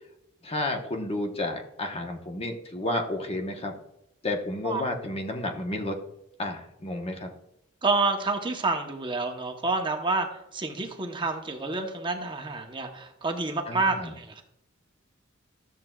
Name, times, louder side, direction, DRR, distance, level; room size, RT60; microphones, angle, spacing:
voice 1, 0.4-3.7 4.2-6.0 6.4-7.3 13.7-14.1, left 1 dB, 30° left, 3 dB, 0.9 m, -31 dB
voice 2, 7.8-14.4, right 3 dB, 25° right, 3 dB, 0.8 m, -28 dB
12.5 x 7.4 x 2.3 m, 0.82 s
head